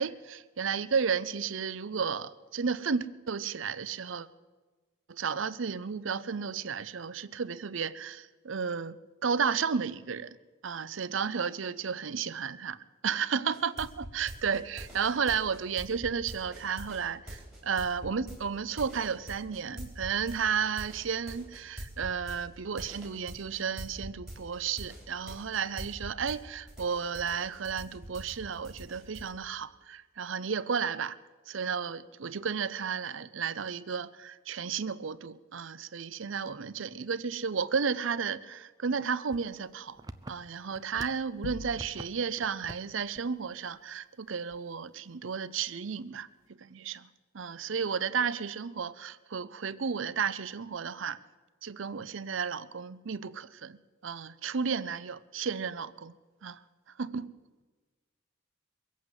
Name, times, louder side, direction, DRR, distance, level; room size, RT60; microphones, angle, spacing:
voice 1, 0.0-4.3 5.1-9.0 9.2-10.4 10.6-12.8 13.0-31.2 31.5-40.0 40.3-46.3 46.6-47.1 47.3-51.2 51.6-53.8 54.0-56.2 56.4-56.6 57.0-57.3, right 6 dB, 75° right, 16 dB, 0.6 m, -33 dB
sound 1, 13.5-26.4 26.7-29.3, equal, ahead, 3.9 m, -44 dB
sound 2, 39.3-41.3 41.6-42.1 42.4-42.9 43.1-43.3 43.7-43.8 44.5-44.9, right 2 dB, 20° right, 0.5 m, -45 dB
sound 3, 41.4-42.4, left 4 dB, 80° left, 0.7 m, -43 dB
22.5 x 8.4 x 7.5 m, 1.3 s
head